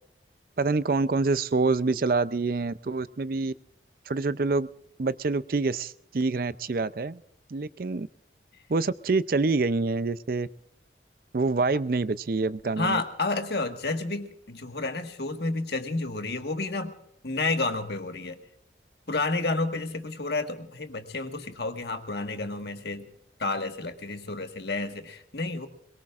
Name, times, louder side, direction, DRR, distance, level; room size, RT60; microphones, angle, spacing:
voice 1, 0.6-3.5 4.1-4.7 5.0-7.2 7.5-8.1 8.7-10.5 11.3-13.0, right 3 dB, 50° right, 16 dB, 0.5 m, -26 dB
voice 2, 12.8-17.0 17.2-18.4 19.1-23.0 23.4-25.7, left 3 dB, 65° left, 6 dB, 1.6 m, -30 dB
22.0 x 22.0 x 2.5 m, 0.76 s
head